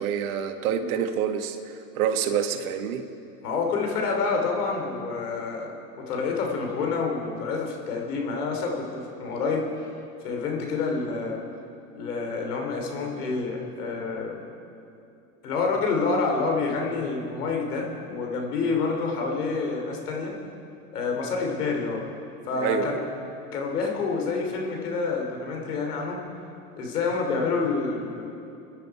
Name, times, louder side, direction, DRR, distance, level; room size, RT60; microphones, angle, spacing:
voice 1, 0.0-3.0 22.6-23.0, right 8 dB, 65° right, 7 dB, 1.6 m, -27 dB
voice 2, 3.4-9.7 10.2-11.4 11.9-14.4 15.4-20.3 20.9-22.0 22.5-23.0 23.5-26.2 26.8-28.3, left 4 dB, 80° left, 1 dB, 3.3 m, -28 dB
27.0 x 10.5 x 4.8 m, 2.6 s
hypercardioid pair, 95°, 45 cm